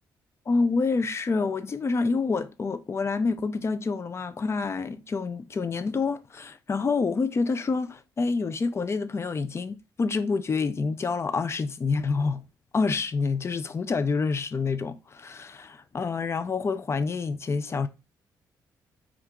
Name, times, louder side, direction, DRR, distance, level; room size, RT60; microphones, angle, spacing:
voice 1, 0.5-12.4 12.7-17.9, left 4 dB, 35° left, 0.4 m, -27 dB
2.8 x 2.4 x 3.5 m
supercardioid pair, 70°, 8 cm